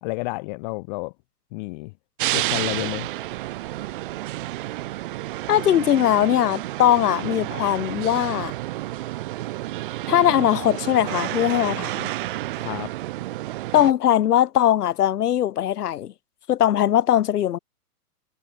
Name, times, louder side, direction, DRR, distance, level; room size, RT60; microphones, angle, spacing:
voice 1, 0.0-1.1 1.5-1.9 2.3-3.1 12.6-12.9, left 28 dB, 30° left, 1.2 m, -30 dB
sound 1, 2.2-13.9, right 16 dB, 35° right, 0.8 m, -30 dB
voice 2, 5.5-8.5 10.1-12.1 13.7-16.1 16.5-17.6, left 11 dB, 70° left, 0.7 m, -20 dB
figure-of-eight pair, 125°, 48 cm